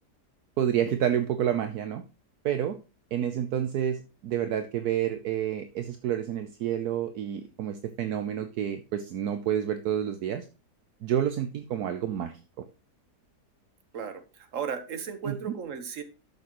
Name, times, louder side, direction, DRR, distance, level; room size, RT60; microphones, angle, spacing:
voice 1, 0.6-2.0 2.4-2.8 3.1-10.5 11.0-12.3 15.2-15.5, right 10 dB, 70° right, 9 dB, 1.2 m, -29 dB
voice 2, 13.9-16.0, right 6 dB, 55° right, 9 dB, 1.5 m, -35 dB
12.0 x 6.4 x 3.0 m, 0.32 s
omnidirectional pair, 1.7 m